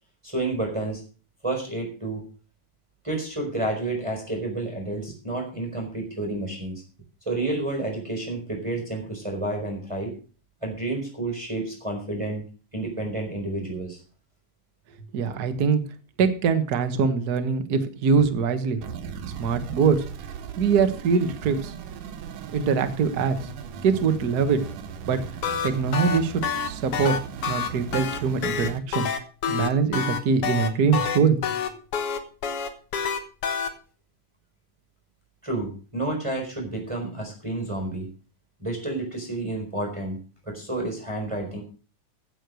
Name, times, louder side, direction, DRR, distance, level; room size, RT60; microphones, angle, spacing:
voice 1, 0.2-1.0 1.4-2.2 3.0-6.8 7.3-10.1 10.6-12.4 12.7-14.0 35.4-38.1 38.6-40.2 40.4-41.6, right 2 dB, 10° right, 1 dB, 3.9 m, -30 dB
voice 2, 15.1-15.8 16.2-18.8 19.2-20.0 20.6-21.7 22.5-23.5 23.8-24.6 25.1-25.2 25.6-27.1 27.5-29.1 29.5-31.4, right 5 dB, 45° right, 8 dB, 1.3 m, -23 dB
sound 1, 18.8-28.8, right 7 dB, 80° right, 2.7 m, -38 dB
sound 2, 25.2-33.7, left 7 dB, 55° left, 2.0 m, -27 dB
15.5 x 6.5 x 6.3 m, 0.38 s
omnidirectional pair, 3.6 m